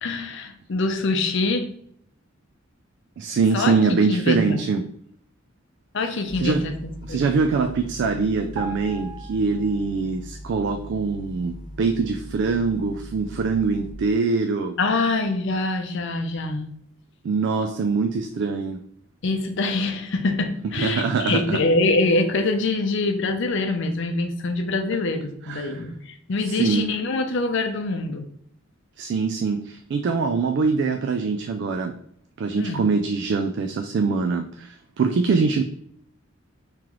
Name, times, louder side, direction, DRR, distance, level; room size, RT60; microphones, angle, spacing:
voice 1, 0.0-1.7 3.5-3.8 4.1-4.6 5.9-6.7 7.1-7.2 14.8-16.7 19.2-28.2 32.6-32.8, left 3 dB, 65° left, 6 dB, 0.6 m, -24 dB
voice 2, 3.2-4.8 6.4-6.6 7.0-14.8 17.2-18.8 20.8-21.6 25.4-25.8 26.5-26.9 29.0-31.9 32.4-35.6, right 4 dB, 60° right, 6 dB, 0.3 m, -23 dB
sound 1, 6.3-13.9, equal, 20° right, 0.8 m, -40 dB
sound 2, 8.6-10.2 10.5-10.7, right 4 dB, 85° right, 1.1 m, -38 dB
3.1 x 3.0 x 3.7 m, 0.67 s
head